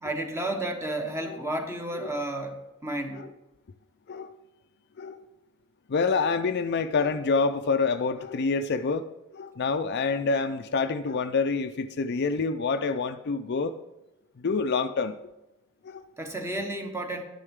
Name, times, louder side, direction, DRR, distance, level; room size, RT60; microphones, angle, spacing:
voice 1, 0.0-3.3 16.2-17.2, right 1 dB, 15° right, 4 dB, 1.1 m, -32 dB
voice 2, 5.9-9.0 9.3-13.7 14.4-15.2 15.8-16.0, left 4 dB, 50° left, 10 dB, 0.4 m, -27 dB
11.5 x 9.8 x 3.6 m, 0.96 s
head